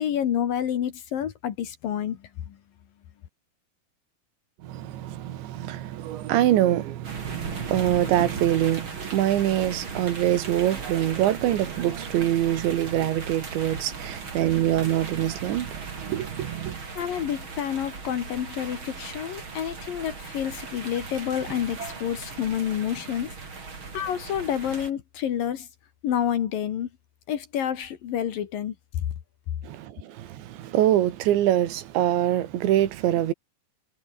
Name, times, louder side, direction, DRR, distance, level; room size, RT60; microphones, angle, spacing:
voice 1, 0.0-2.2 2.5-2.6 17.0-23.3 23.9-25.7 26.0-26.9 27.3-28.7, left 9 dB, 60° left, 3.0 m, -28 dB
voice 2, 4.6-16.8 29.6-33.3, right 12 dB, 80° right, 4.0 m, -24 dB
sound 1, 7.0-24.9, right 4 dB, 30° right, 4.0 m, -38 dB
omnidirectional pair, 5.2 m